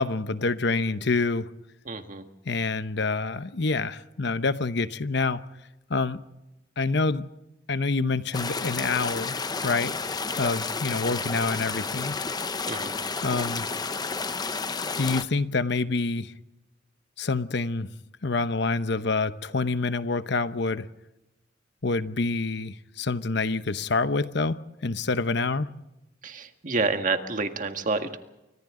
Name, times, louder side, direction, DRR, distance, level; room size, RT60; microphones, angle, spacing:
voice 1, 0.0-1.5 2.5-5.4 5.9-6.2 6.8-7.3 7.7-10.0 10.4-12.2 13.2-13.7 15.0-16.3 17.2-17.9 18.2-20.9 21.8-25.7, left 3 dB, 65° left, 0.9 m, -27 dB
voice 2, 1.8-2.2 12.7-13.0 26.2-28.2, right 3 dB, 45° right, 1.8 m, -28 dB
sound 1, 8.3-15.2, left 4 dB, 20° left, 0.8 m, -31 dB
29.0 x 25.0 x 3.8 m
head